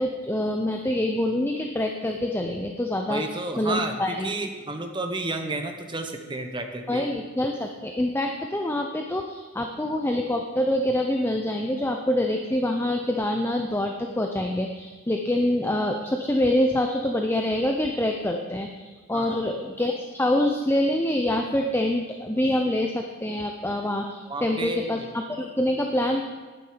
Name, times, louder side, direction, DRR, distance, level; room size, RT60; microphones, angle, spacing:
voice 1, 0.0-4.3 6.9-26.3, left 1 dB, 10° left, 3 dB, 0.5 m, -26 dB
voice 2, 3.1-7.1 19.1-19.5 24.3-25.1, right 2 dB, 20° right, 5 dB, 0.9 m, -31 dB
9.8 x 9.1 x 5.0 m, 1.4 s
head